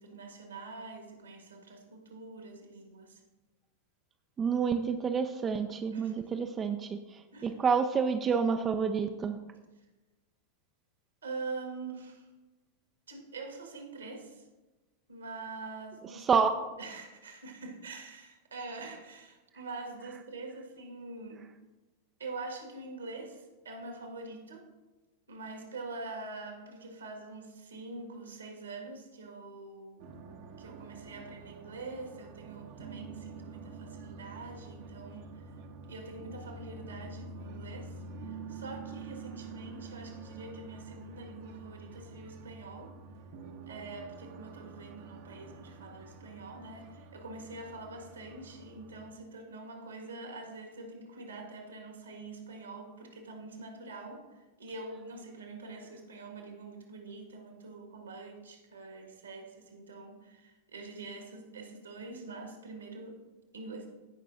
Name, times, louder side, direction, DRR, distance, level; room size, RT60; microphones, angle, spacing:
voice 1, 0.0-3.2 5.9-6.5 7.3-7.6 11.2-12.3 13.1-14.5 15.1-16.5 16.8-21.4 22.2-24.7 25.3-30.1 30.6-35.5 35.9-43.0 43.7-63.2 63.5-63.9, right 3 dB, 70° right, 3 dB, 1.7 m, -45 dB
voice 2, 4.4-9.4 16.3-16.5, right 6 dB, 25° right, 7 dB, 0.4 m, -29 dB
sound 1, 30.0-49.1, right 4 dB, 50° right, 0.8 m, -47 dB
16.0 x 5.5 x 2.6 m, 1.1 s
figure-of-eight pair, 90°, 0 cm